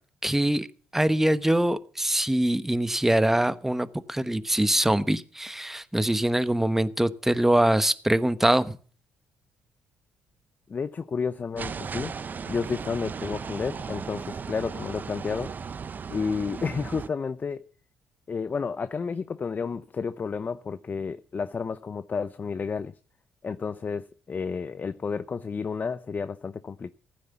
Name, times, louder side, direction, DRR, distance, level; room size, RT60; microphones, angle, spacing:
voice 1, 0.2-0.7 0.9-8.8, right 1 dB, 5° right, 1.1 m, -23 dB
voice 2, 10.7-12.2 12.5-15.5 16.1-17.6 18.3-22.9 23.4-26.9, left 5 dB, 40° left, 0.7 m, -31 dB
sound 1, 11.6-17.1, right 6 dB, 40° right, 0.6 m, -36 dB
15.0 x 9.6 x 7.2 m
supercardioid pair, 65°, 5 cm